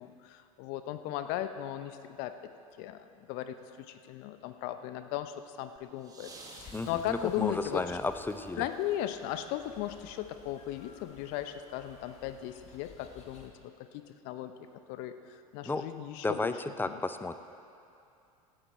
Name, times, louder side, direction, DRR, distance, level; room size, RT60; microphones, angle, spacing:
voice 1, 0.0-2.3 2.8-7.9 8.6-14.5 14.9-16.6 16.8-17.0, left 12 dB, 55° left, 10 dB, 0.7 m, -37 dB
sound 1, 5.8-9.9 11.1-11.2, right 3 dB, 20° right, 1.7 m, -54 dB
sound 2, 6.6-13.5, left 5 dB, 35° left, 1.7 m, -55 dB
voice 2, 6.7-8.6 15.7-15.8 16.2-17.3, left 3 dB, 10° left, 10 dB, 0.6 m, -33 dB
16.5 x 9.6 x 4.3 m, 2.6 s
hypercardioid pair, 80°, 19 cm